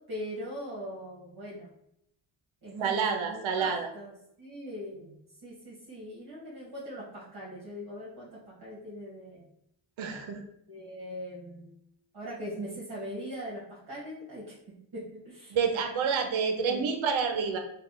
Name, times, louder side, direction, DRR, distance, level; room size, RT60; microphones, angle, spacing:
voice 1, 0.1-1.7 2.6-4.1 4.4-5.1 5.4-9.5 10.7-11.7 12.1-14.4 14.9-15.6 16.5-16.9, equal, 50° right, -6 dB, 1.5 m, -41 dB
voice 2, 2.8-3.9 10.0-10.4 15.5-17.6, right 6 dB, 75° right, 5 dB, 0.8 m, -28 dB
3.5 x 2.3 x 3.8 m, 0.76 s
supercardioid pair, 55°, 48 cm